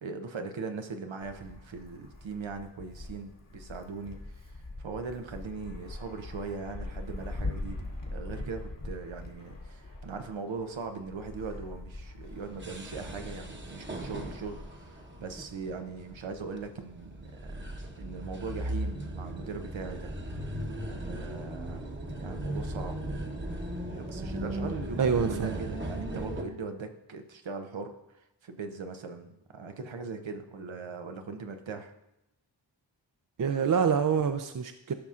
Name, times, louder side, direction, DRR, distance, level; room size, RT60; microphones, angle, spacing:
voice 1, 0.0-4.2 4.4-17.6 18.0-20.2 20.9-21.8 22.2-23.0 23.9-31.9, right 4 dB, 85° right, 6 dB, 0.8 m, -40 dB
Wind, 1.2-16.1, left 2 dB, 45° left, 1.4 m, -42 dB
sound 1, 12.3-26.4, right 1 dB, 25° right, 1.0 m, -38 dB
voice 2, 25.0-25.6 33.4-34.9, right 6 dB, 50° right, 7 dB, 0.5 m, -26 dB
13.5 x 5.6 x 2.5 m, 0.88 s
wide cardioid pair, 50°, 45 cm